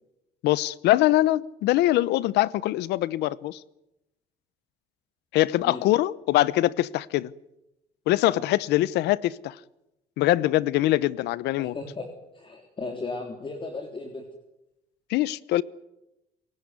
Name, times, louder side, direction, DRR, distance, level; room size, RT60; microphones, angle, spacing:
voice 1, 0.4-3.6 5.3-7.3 8.1-9.6 10.2-11.8 15.1-15.6, left 16 dB, 80° left, 0.8 m, -23 dB
voice 2, 11.6-12.1 12.3-14.3, left 3 dB, 30° left, 3.6 m, -36 dB
27.5 x 17.0 x 9.7 m
cardioid pair, 110°, 17 cm